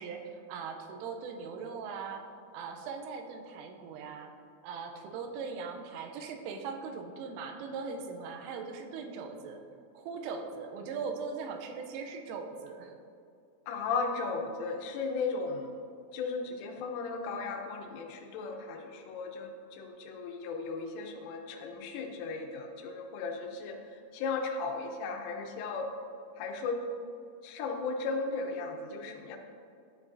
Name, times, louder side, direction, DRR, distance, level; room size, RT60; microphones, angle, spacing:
voice 1, 0.0-2.2 2.5-4.3 4.6-9.6 9.9-13.0, right 5 dB, 90° right, 4 dB, 3.3 m, -40 dB
voice 2, 13.7-15.7 16.1-25.9 26.4-26.9 27.4-29.4, left 4 dB, 85° left, 4 dB, 3.3 m, -36 dB
12.5 x 7.2 x 2.7 m, 2.5 s
omnidirectional pair, 5.6 m